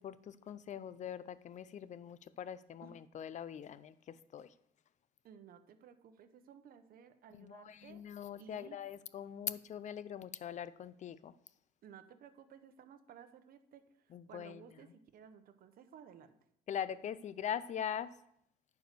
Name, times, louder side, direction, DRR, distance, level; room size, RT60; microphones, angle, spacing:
voice 1, 0.0-4.5 7.4-11.3 14.1-14.6 16.7-18.1, left 9 dB, 45° left, 16 dB, 0.6 m, -42 dB
voice 2, 5.2-8.0 8.4-8.8 11.8-16.3, right 8 dB, 60° right, 9 dB, 1.0 m, -57 dB
10.5 x 4.8 x 6.8 m, 0.74 s
cardioid pair, 110°, 17 cm